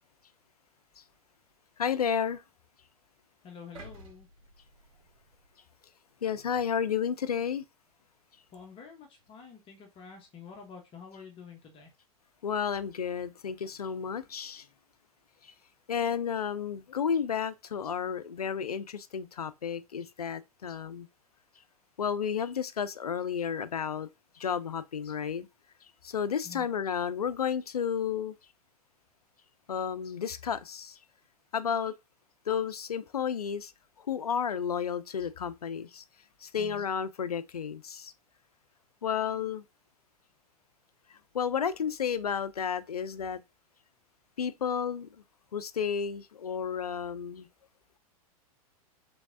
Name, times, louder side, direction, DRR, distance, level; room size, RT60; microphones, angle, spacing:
voice 1, 1.8-2.4 6.2-7.6 12.4-14.6 15.4-15.5 15.9-21.1 22.0-24.1 24.4-25.5 26.0-28.3 29.7-31.0 31.5-31.9 32.5-33.7 34.0-36.0 36.4-38.1 39.0-39.6 41.3-43.4 44.4-45.1 45.5-47.5, left 7 dB, 85° left, 0.4 m, -32 dB
voice 2, 3.4-4.3 8.5-11.9 26.4-26.7 36.6-36.8, left 6 dB, 30° left, 0.9 m, -48 dB
sound 1, 3.7-5.9 6.4-6.5, right 2 dB, 60° right, 1.9 m, -52 dB
3.4 x 3.1 x 2.5 m
figure-of-eight pair, 100°, 19 cm